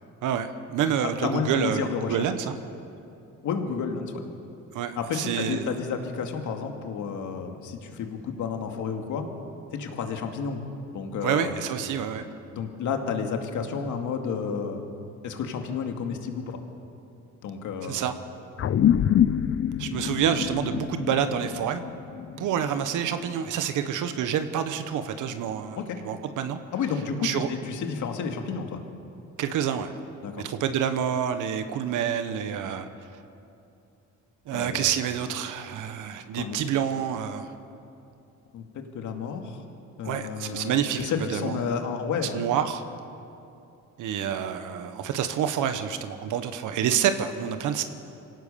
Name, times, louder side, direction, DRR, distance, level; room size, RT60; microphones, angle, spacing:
voice 1, 0.2-2.6 4.7-5.7 11.2-12.2 17.9-18.1 19.8-21.8 22.4-25.8 26.0-26.6 27.2-27.5 29.4-29.9 30.4-32.9 34.5-37.5 40.0-41.6 42.3-42.8 44.0-47.8, right 8 dB, 85° right, 9 dB, 1.2 m, -28 dB
voice 2, 1.0-2.2 3.4-4.1 4.9-9.3 9.7-10.6 10.9-11.6 12.5-14.8 15.2-16.6 17.4-18.0 25.7-26.0 26.7-28.8 30.2-30.5 34.5-35.0 36.4-36.6 38.5-39.6 40.0-42.4, left 6 dB, 75° left, 4 dB, 2.4 m, -31 dB
sound 1, 18.6-23.3, left 10 dB, 50° left, 0.6 m, -26 dB
25.0 x 17.5 x 6.9 m, 2.7 s
cardioid pair, 90°, 30 cm